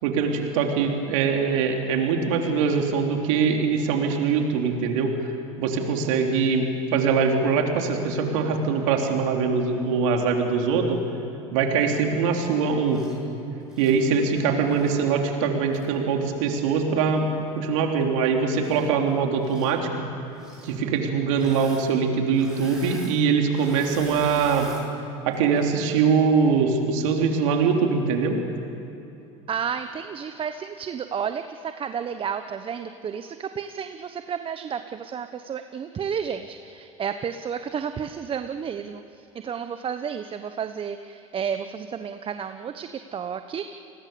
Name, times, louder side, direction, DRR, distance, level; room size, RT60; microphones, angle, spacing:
voice 1, 0.0-5.1 5.6-11.0 11.5-13.0 13.8-17.3 17.5-19.9 20.6-24.7 25.2-28.4, right 5 dB, 75° right, 2 dB, 3.4 m, -23 dB
Engine / Mechanisms, 12.9-13.2 13.6-15.0 15.7-15.8 18.5-19.1 19.4-19.8 20.3-20.8 21.3-21.9 22.1-24.8 25.3-25.6, right 1 dB, 5° right, 7.3 m, -43 dB
voice 2, 29.5-43.6, right 7 dB, 35° right, 9 dB, 1.0 m, -32 dB
30.0 x 20.5 x 7.0 m, 2.9 s
hypercardioid pair, 90°, 17 cm